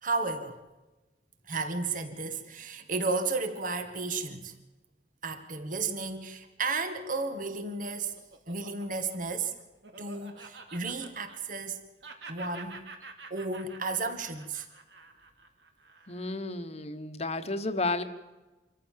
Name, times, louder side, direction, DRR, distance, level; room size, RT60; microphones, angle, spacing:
voice 1, 0.0-0.6 1.5-4.5 5.2-8.2 8.5-9.5 10.0-11.8 12.3-12.8 13.3-14.7, right 3 dB, 50° right, 1.8 m, -33 dB
Laughter, 7.6-11.7 12.0-16.5, right 4 dB, 80° right, 2.5 m, -49 dB
voice 2, 16.1-18.0, left 2 dB, 35° left, 1.3 m, -32 dB
26.0 x 14.5 x 7.5 m
head